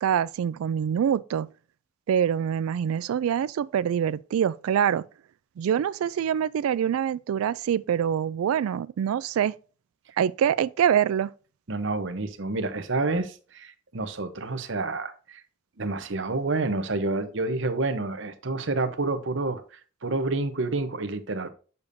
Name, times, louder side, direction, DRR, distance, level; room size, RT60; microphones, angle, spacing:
voice 1, 0.0-1.5 2.1-5.0 5.6-9.5 10.2-11.3, right 9 dB, 90° right, 0.3 m, -25 dB
voice 2, 11.7-15.4 15.8-19.6 20.0-21.5, right 3 dB, 60° right, 0.9 m, -28 dB
6.9 x 6.8 x 2.6 m
head